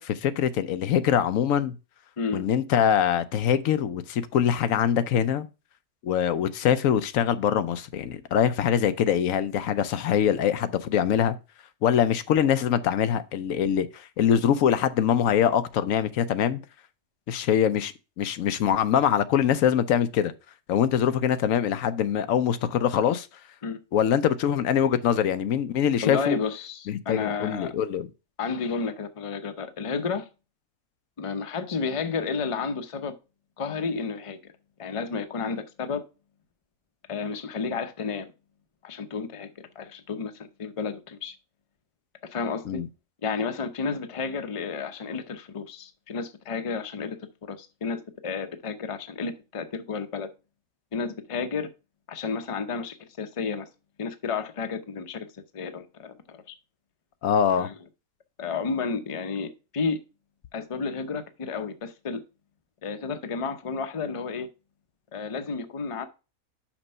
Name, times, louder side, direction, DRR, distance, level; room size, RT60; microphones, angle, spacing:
voice 1, 0.0-1.7 2.3-5.5 6.0-11.4 11.8-16.6 17.3-20.3 20.7-23.3 23.9-26.4 26.9-28.1 42.7-42.9 57.2-57.7, left 9 dB, 80° left, 1.0 m, -23 dB
voice 2, 2.2-2.5 23.6-23.8 26.0-27.7 28.4-30.3 31.2-33.1 33.6-34.4 34.8-36.0 37.1-38.3 38.8-41.4 42.2-42.8 43.2-50.3 50.9-51.7 52.1-53.7 54.0-56.5 57.5-57.7 58.4-60.0 60.5-62.2 62.8-64.5 65.1-66.0, left 5 dB, 30° left, 0.7 m, -31 dB
5.9 x 5.3 x 5.4 m
omnidirectional pair, 1.4 m